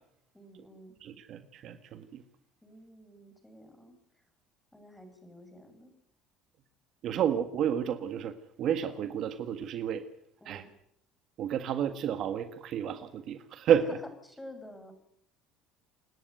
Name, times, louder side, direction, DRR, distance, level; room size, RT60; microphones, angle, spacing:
voice 1, 0.3-0.9 2.6-4.2 4.7-5.9 7.0-7.2 10.4-10.7 13.9-14.9, left 1 dB, 10° left, 7 dB, 6.2 m, -50 dB
voice 2, 1.0-2.2 7.0-10.0 10.4-10.6 11.4-14.0, right 9 dB, 55° right, 9 dB, 1.7 m, -31 dB
28.0 x 10.0 x 9.2 m, 0.73 s
supercardioid pair, 90°, 0 cm